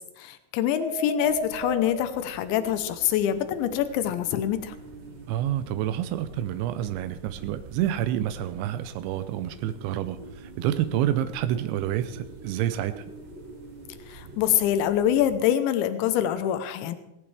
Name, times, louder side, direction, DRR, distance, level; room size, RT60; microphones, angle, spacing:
voice 1, 0.2-4.7 14.1-17.0, left 10 dB, 85° left, 10 dB, 3.3 m, -25 dB
sound 1, 0.8-5.9 7.7-8.0 9.8-13.9, right 1 dB, 60° right, 4.6 m, -41 dB
sound 2, 1.2-15.4, right 2 dB, 45° right, 1.7 m, -47 dB
voice 2, 5.3-13.1, right 11 dB, 85° right, 10 dB, 3.0 m, -28 dB
18.0 x 17.0 x 3.4 m, 0.89 s
omnidirectional pair, 5.2 m